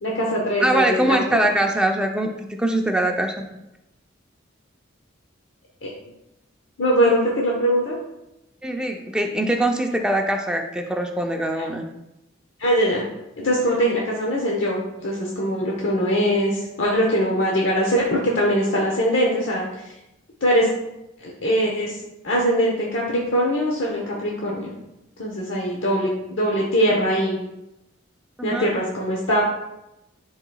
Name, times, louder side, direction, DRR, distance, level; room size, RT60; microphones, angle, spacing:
voice 1, 0.0-1.6 5.8-5.9 6.8-8.0 12.6-13.0 13.4-19.9 20.4-20.7 21.2-22.0 22.2-24.7 25.2-27.4 28.4-29.4, equal, 70° left, -3 dB, 0.9 m, -22 dB
voice 2, 0.6-3.4 8.6-11.8 28.4-28.7, right 1 dB, 5° right, 2 dB, 0.5 m, -22 dB
10.0 x 3.9 x 2.3 m, 0.91 s
head